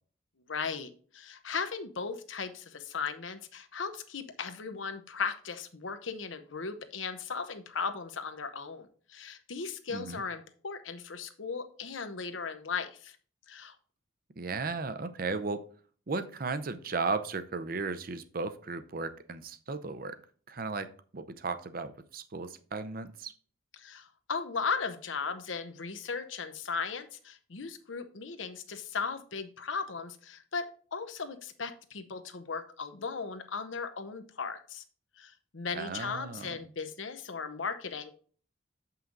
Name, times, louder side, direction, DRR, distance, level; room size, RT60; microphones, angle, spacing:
voice 1, 0.5-13.2 13.5-13.7 23.7-34.8 35.2-38.1, left 5 dB, 90° left, 8 dB, 0.9 m, -37 dB
voice 2, 14.4-15.7 16.1-20.2 20.5-20.9 21.1-23.3 35.7-36.6, right 4 dB, 50° right, 11 dB, 0.6 m, -35 dB
7.2 x 5.6 x 3.8 m, 0.44 s
head